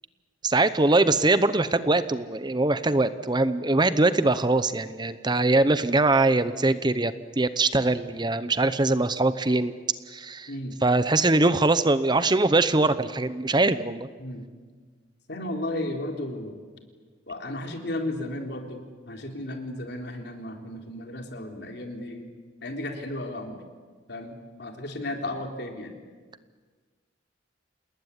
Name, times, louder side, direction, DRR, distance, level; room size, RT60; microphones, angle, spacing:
voice 1, 0.4-9.8 10.1-10.5 10.8-14.1, right 2 dB, 25° right, 13 dB, 0.8 m, -22 dB
voice 2, 15.3-16.6 17.3-22.3 22.6-23.5 24.1-25.9, left 1 dB, 60° left, 3 dB, 3.8 m, -34 dB
28.5 x 19.5 x 9.9 m, 1.5 s
head